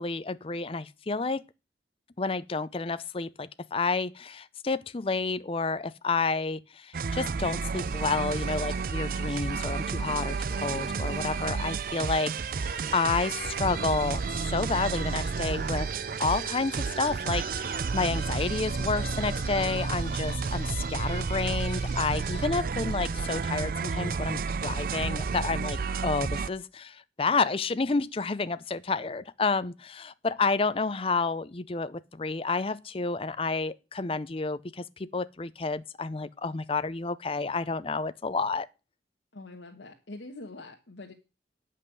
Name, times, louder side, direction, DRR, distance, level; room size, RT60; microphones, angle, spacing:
voice 1, 0.0-1.4 2.2-15.9 16.2-38.7, left 4 dB, 30° left, 0.5 m, -30 dB
sound 1, 6.9-26.5, right 5 dB, 50° right, 0.5 m, -31 dB
sound 2, 7.7-22.4, left 5 dB, 65° left, 1.9 m, -50 dB
voice 2, 39.3-41.1, left 2 dB, 90° left, 1.3 m, -44 dB
9.4 x 5.6 x 7.8 m
head